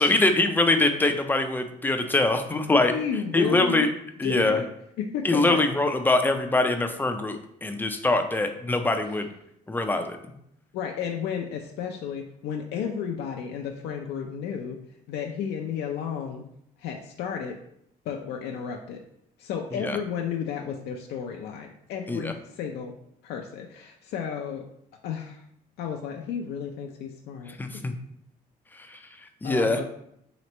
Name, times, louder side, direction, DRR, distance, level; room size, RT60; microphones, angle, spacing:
voice 1, 0.0-2.9 3.3-3.9 4.2-4.6 5.2-9.3 9.7-10.2 19.8-20.0 22.1-22.3 27.6-27.9 28.7-29.8, left 2 dB, 10° left, 6 dB, 0.4 m, -23 dB
voice 2, 2.9-3.8 4.2-4.7 5.0-5.6 10.7-14.8 15.1-16.5 16.8-17.6 18.1-19.0 19.4-22.9 23.2-24.6 25.0-25.4 25.8-27.5 29.4-29.8, left 7 dB, 75° left, 1 dB, 0.5 m, -33 dB
3.2 x 3.0 x 4.2 m, 0.74 s
cardioid pair, 110°, 17 cm